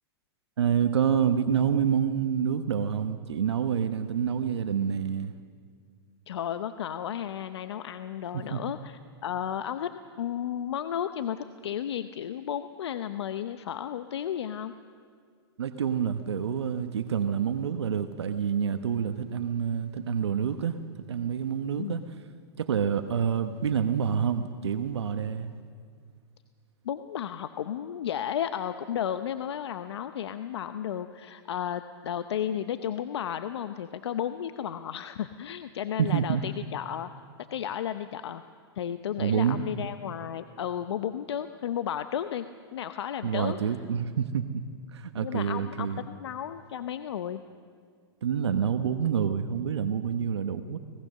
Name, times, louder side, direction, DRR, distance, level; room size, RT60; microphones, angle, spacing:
voice 1, 0.6-5.3 8.3-8.6 15.6-20.8 21.1-22.0 22.6-25.5 36.0-36.4 39.2-39.6 43.2-44.6 44.9-46.0 48.2-50.8, right 7 dB, 90° right, 8 dB, 1.1 m, -27 dB
voice 2, 6.3-9.9 10.2-14.7 21.8-22.0 26.8-37.1 37.5-38.4 38.8-43.6 45.2-47.4, left 10 dB, 80° left, 10 dB, 0.8 m, -33 dB
25.5 x 18.5 x 6.6 m, 2.1 s
hypercardioid pair, 120°, 14 cm